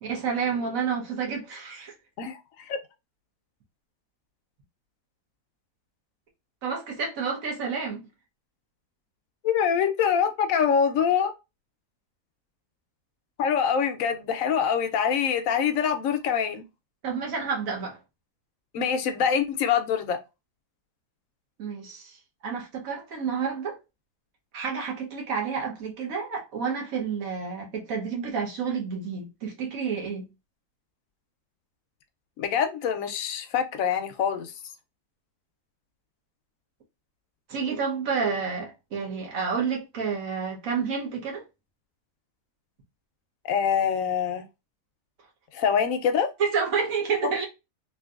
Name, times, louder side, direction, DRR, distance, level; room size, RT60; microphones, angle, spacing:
voice 1, 0.0-1.9 6.6-8.0 17.0-18.0 21.6-22.2 22.4-23.8 24.5-30.3 37.5-41.4 46.4-47.5, right 6 dB, 60° right, 1.3 m, -29 dB
voice 2, 9.4-11.3 13.4-16.6 18.7-20.2 32.4-34.5 43.4-44.4 45.5-46.3, left 7 dB, 65° left, 0.9 m, -24 dB
3.1 x 2.7 x 2.3 m
omnidirectional pair, 1.7 m